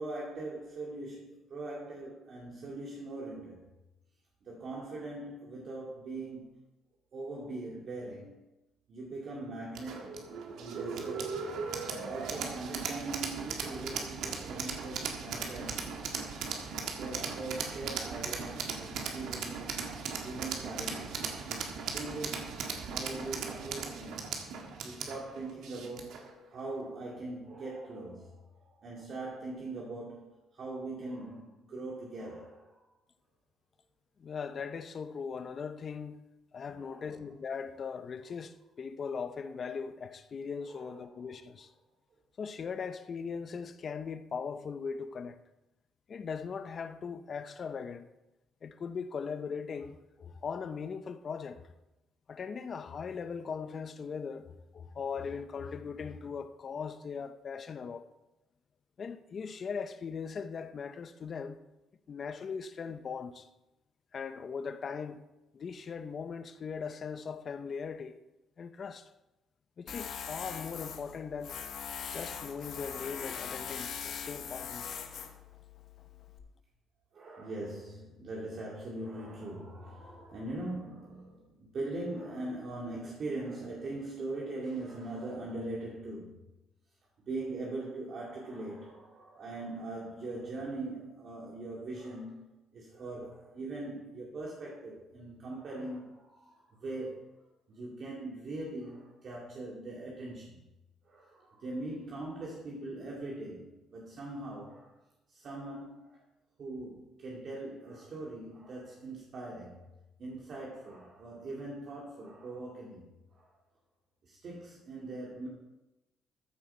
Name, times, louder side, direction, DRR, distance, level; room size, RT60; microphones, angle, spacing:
voice 1, 0.0-3.7 4.4-6.6 7.1-8.4 8.9-11.5 12.0-16.0 16.9-19.9 20.2-21.3 21.9-24.4 24.8-32.8 36.7-37.1 40.6-41.3 77.1-86.3 87.3-92.4 92.7-97.3 97.7-100.6 101.0-105.0 105.3-106.2 106.6-109.8 110.2-113.5 114.2-115.5, right 2 dB, 45° right, 2.3 m, -41 dB
sound 1, 9.7-26.3, right 5 dB, 80° right, 1.9 m, -38 dB
voice 2, 34.2-36.2 36.5-41.7 42.4-45.4 46.1-48.1 48.6-51.7 52.3-58.1 59.0-61.6 62.1-63.5 64.1-65.2 65.5-68.2 68.6-69.1 69.8-71.6 72.1-74.9, left 6 dB, 40° left, 0.7 m, -39 dB
Tools, 69.9-76.4, left 7 dB, 60° left, 1.3 m, -41 dB
14.0 x 7.8 x 4.4 m
cardioid pair, 130°, 0 cm